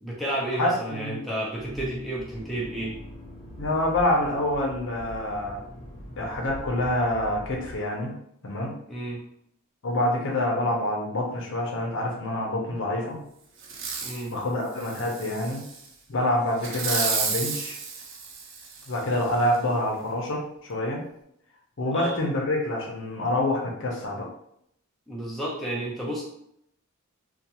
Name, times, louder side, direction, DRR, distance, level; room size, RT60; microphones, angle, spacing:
voice 1, 0.0-2.9 8.9-9.2 14.0-14.3 21.9-22.2 25.1-26.2, right 1 dB, ahead, -5 dB, 0.5 m, -31 dB
voice 2, 0.6-1.2 3.6-5.6 6.2-8.1 8.4-8.7 9.8-13.2 14.3-15.6 16.1-17.8 18.9-21.0 21.8-24.3, left 1 dB, 60° left, -1 dB, 0.6 m, -26 dB
Accelerating revving vroom, 1.5-7.8, equal, 20° left, 0.8 m, -42 dB
Fireworks, 13.6-14.2 14.8-15.8 16.6-19.0 19.5-19.6, right 5 dB, 60° right, 0.5 m, -31 dB
2.4 x 2.3 x 2.8 m, 0.73 s
head